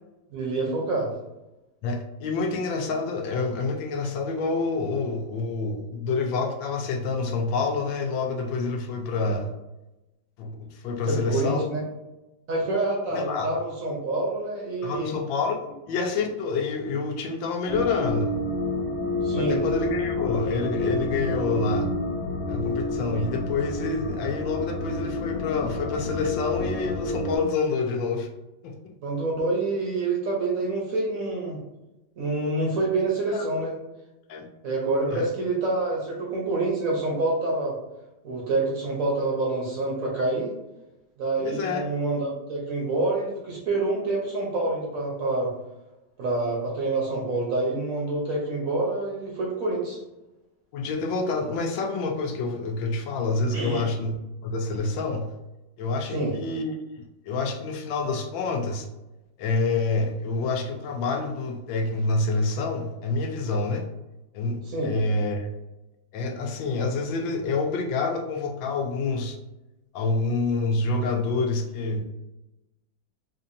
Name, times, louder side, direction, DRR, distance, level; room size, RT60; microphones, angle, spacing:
voice 1, 0.3-1.1 11.1-11.8 12.5-15.1 19.2-19.6 29.0-31.6 32.2-33.7 34.6-37.7 38.2-40.5 41.2-45.5 46.2-50.0 53.5-53.8 56.1-56.3 64.6-64.9, right 2 dB, 55° right, -3 dB, 1.1 m, -27 dB
voice 2, 1.8-9.5 10.4-11.7 13.1-13.6 14.8-15.6 15.9-18.4 19.3-21.9 22.5-28.3 28.6-28.8 33.3-33.5 34.3-34.5 35.1-35.3 41.4-41.8 50.7-54.1 54.4-55.3 55.8-56.8 57.2-58.9 59.4-63.9 64.3-65.5 66.1-69.4 69.9-72.0, left 3 dB, 85° left, 4 dB, 1.3 m, -27 dB
sound 1, 17.7-27.4, left 2 dB, 70° left, 1.0 m, -29 dB
4.5 x 2.6 x 2.6 m, 0.99 s
omnidirectional pair, 2.0 m